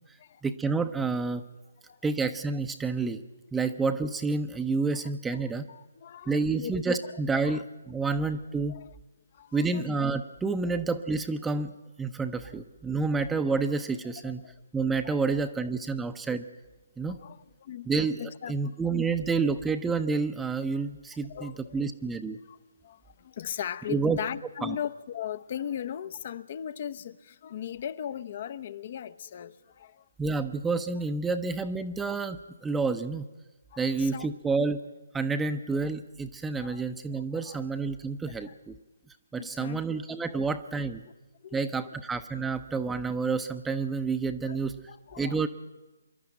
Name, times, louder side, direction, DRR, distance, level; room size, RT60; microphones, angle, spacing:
voice 1, 0.4-1.4 2.0-3.2 3.5-5.7 6.3-8.8 9.5-11.7 12.0-14.4 14.7-16.4 17.0-17.2 17.9-18.2 18.5-22.4 23.9-24.2 24.6-24.8 30.2-32.4 32.6-33.2 33.8-34.8 35.1-38.7 39.3-41.0 41.5-44.8 45.2-45.5, right 4 dB, 5° right, 0.7 m, -29 dB
voice 2, 4.9-6.7 7.0-7.6 8.0-8.1 8.7-8.9 9.3-9.9 10.6-10.8 12.4-12.6 14.2-14.5 15.0-15.4 17.1-17.9 18.2-18.5 21.1-21.8 22.4-22.6 22.8-30.1 31.5-31.6 33.7-34.3 36.6-36.8 37.1-37.6 38.3-38.6 39.4-40.0 41.0-41.1 41.4-42.0 44.4-44.6 44.9-45.5, left 9 dB, 40° left, 0.7 m, -39 dB
25.0 x 11.5 x 9.1 m
figure-of-eight pair, 145°, 0 cm